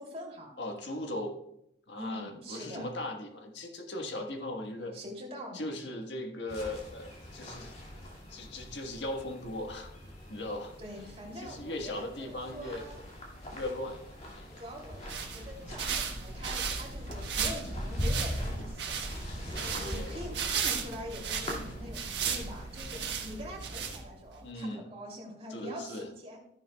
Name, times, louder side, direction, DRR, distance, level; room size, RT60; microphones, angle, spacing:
voice 1, 0.0-0.5 1.9-2.9 4.9-5.7 10.8-13.0 14.6-19.0 19.4-26.4, equal, 35° right, -1 dB, 2.9 m, -44 dB
voice 2, 0.6-1.4 1.9-4.9 5.5-7.7 8.3-9.9 10.3-10.7 11.4-12.9 13.5-14.1 14.3-14.6 19.7-20.2 24.4-24.9 25.5-26.1, left 1 dB, 70° left, 3 dB, 1.5 m, -38 dB
sound 1, 6.5-24.0, equal, 35° left, 2.3 m, -42 dB
sound 2, 14.8-24.3, right 6 dB, 70° right, 1.4 m, -36 dB
13.5 x 11.0 x 2.3 m, 0.79 s
head